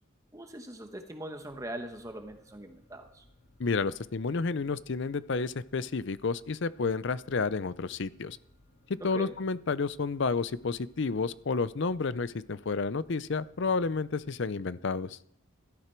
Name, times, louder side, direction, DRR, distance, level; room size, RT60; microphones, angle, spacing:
voice 1, 0.3-3.2 9.0-9.4, right 1 dB, 15° right, 6 dB, 1.0 m, -41 dB
sound 1, 1.5-14.4, left 1 dB, 85° left, 6.8 m, -63 dB
voice 2, 3.6-8.4 9.0-15.2, left 4 dB, 55° left, 17 dB, 0.5 m, -31 dB
17.0 x 13.0 x 4.5 m, 0.71 s
head